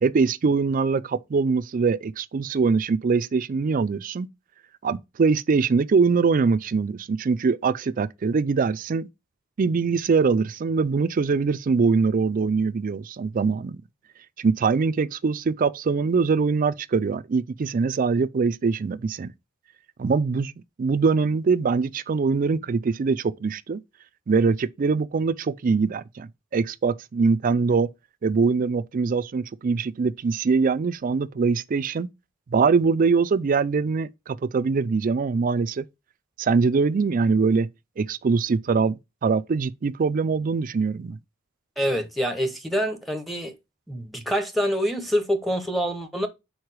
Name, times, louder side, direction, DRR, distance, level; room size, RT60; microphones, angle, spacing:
voice 1, 0.0-4.3 4.8-9.1 9.6-13.8 14.4-19.3 20.0-20.5 20.8-23.8 24.3-27.9 28.2-32.1 32.5-35.8 36.4-37.7 38.0-41.2, right 4 dB, 40° right, 0.4 m, -23 dB
voice 2, 41.8-43.5 43.9-46.3, equal, ahead, 0.7 m, -26 dB
4.8 x 4.4 x 4.7 m
head